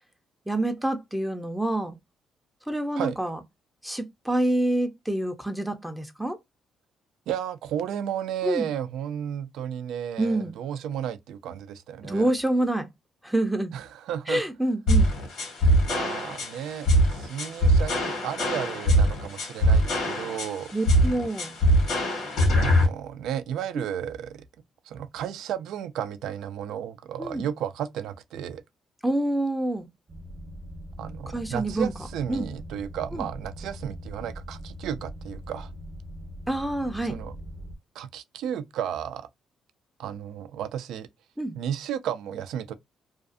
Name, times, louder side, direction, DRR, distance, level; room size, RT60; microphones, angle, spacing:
voice 1, 0.5-2.0 2.7-3.4 3.8-6.4 8.4-8.7 10.2-10.5 12.0-12.9 13.2-13.7 14.3-15.1 20.7-21.6 23.7-23.8 27.2-27.5 29.0-29.9 31.3-31.9 32.3-32.5 33.1-33.3 36.5-37.2 41.4-41.6, right 1 dB, 5° right, 0.5 m, -27 dB
voice 2, 7.3-12.3 13.7-14.4 15.8-20.7 22.6-24.4 24.8-28.6 31.0-35.7 37.1-37.3 37.9-39.3 40.0-41.1 41.5-42.7, right 9 dB, 80° right, 0.4 m, -33 dB
sound 1, 14.9-22.9, equal, 80° left, 1.2 m, -22 dB
sound 2, 30.1-37.8, equal, 35° right, 0.7 m, -41 dB
2.5 x 2.3 x 2.4 m
cardioid pair, 90°, 0 cm